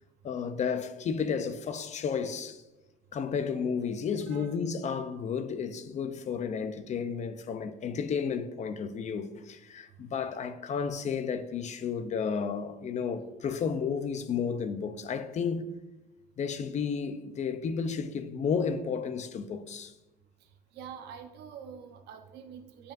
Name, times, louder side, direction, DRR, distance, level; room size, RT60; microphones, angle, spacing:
voice 1, 0.2-2.6 3.1-15.7 16.4-19.9, left 6 dB, 45° left, 0.6 m, -32 dB
voice 2, 20.7-22.9, right 7 dB, 80° right, 0.9 m, -45 dB
10.0 x 5.2 x 2.6 m
cardioid pair, 110°, 17 cm